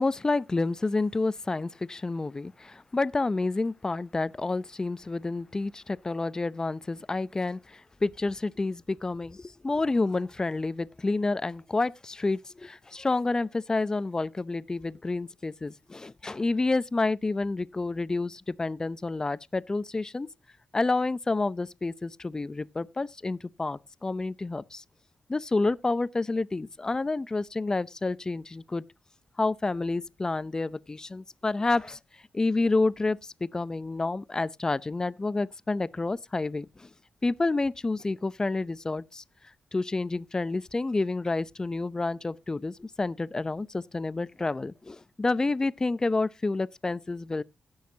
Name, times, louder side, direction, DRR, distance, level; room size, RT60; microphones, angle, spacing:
voice 1, 0.0-20.3 20.7-24.8 25.3-28.9 29.4-32.0 32.3-36.9 37.2-39.2 39.7-47.4, left 3 dB, 30° left, 0.6 m, -29 dB
16.5 x 6.5 x 2.8 m
cardioid pair, 55°, 2 cm